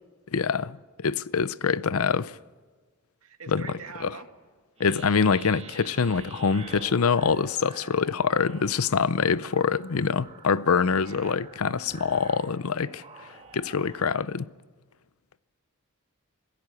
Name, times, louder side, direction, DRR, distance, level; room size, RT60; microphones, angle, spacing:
voice 1, 0.3-2.4 3.5-3.6 4.0-4.1 4.8-14.5, left 5 dB, 75° left, 0.6 m, -25 dB
voice 2, 3.2-4.3 11.0-11.4, right 4 dB, 80° right, 2.4 m, -43 dB
sound 1, 4.8-14.2, right 4 dB, 30° right, 2.3 m, -47 dB
26.5 x 17.5 x 8.3 m
head